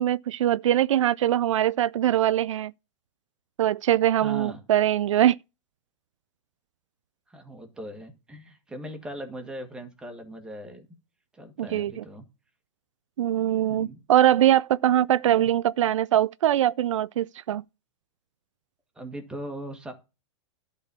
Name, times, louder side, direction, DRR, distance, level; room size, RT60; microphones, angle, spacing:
voice 1, 0.0-2.7 3.6-5.4 11.6-12.0 13.2-17.6, right 12 dB, 80° right, 0.4 m, -22 dB
voice 2, 4.2-4.6 7.3-10.9 11.3-12.3 13.7-14.0 15.2-15.5 18.9-19.9, right 1 dB, 5° right, 1.6 m, -39 dB
11.5 x 4.1 x 6.9 m
hypercardioid pair, 150°, 16 cm